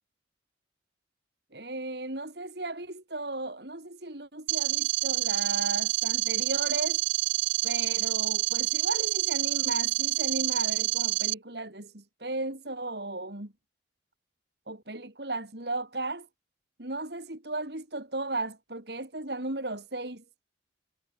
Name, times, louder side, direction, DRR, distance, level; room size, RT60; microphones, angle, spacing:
voice 1, 1.5-7.0 7.6-13.5 14.7-16.3 16.8-20.2, right 2 dB, 60° right, 3.2 m, -35 dB
sound 1, 4.5-11.3, right 19 dB, 75° right, 0.3 m, -28 dB
head